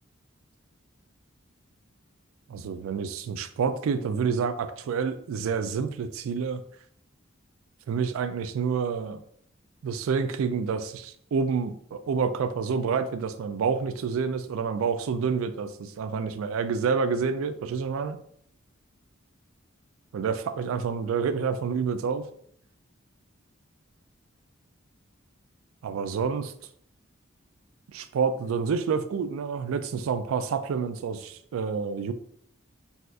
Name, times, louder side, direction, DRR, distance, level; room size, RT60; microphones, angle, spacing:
voice 1, 2.5-6.6 7.9-9.2 9.8-18.2 20.1-22.2 25.8-26.5 27.9-32.1, right 5 dB, 90° right, 10 dB, 0.3 m, -28 dB
4.0 x 2.4 x 2.4 m, 0.65 s
head